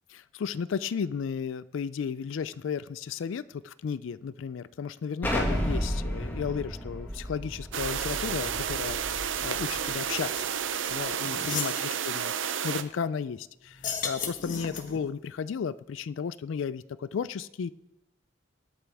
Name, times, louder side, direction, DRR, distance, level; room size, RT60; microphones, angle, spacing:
voice 1, 0.1-10.5 10.9-17.7, left 6 dB, 85° left, 16 dB, 0.4 m, -34 dB
Explosion, 5.2-9.9, equal, 10° left, 1.9 m, -32 dB
sound 1, 7.7-12.8, right 8 dB, 85° right, 0.7 m, -31 dB
sound 2, 10.8-10.9 11.2-11.8 13.7-15.1, left 6 dB, 45° left, 1.2 m, -34 dB
21.0 x 8.9 x 3.5 m, 0.92 s
head